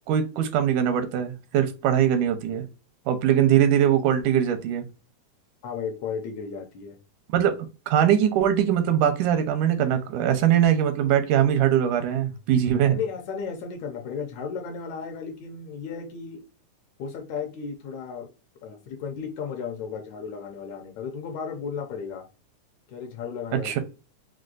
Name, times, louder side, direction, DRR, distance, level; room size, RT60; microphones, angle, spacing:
voice 1, 0.1-2.7 3.1-4.9 7.3-7.6 7.9-13.0 23.5-23.8, right 10 dB, 85° right, 2.1 m, -21 dB
voice 2, 5.6-7.0 12.9-16.4 17.0-18.3 18.6-22.3 22.9-23.8, left 6 dB, 70° left, 1.9 m, -34 dB
6.1 x 2.2 x 2.5 m
omnidirectional pair, 3.7 m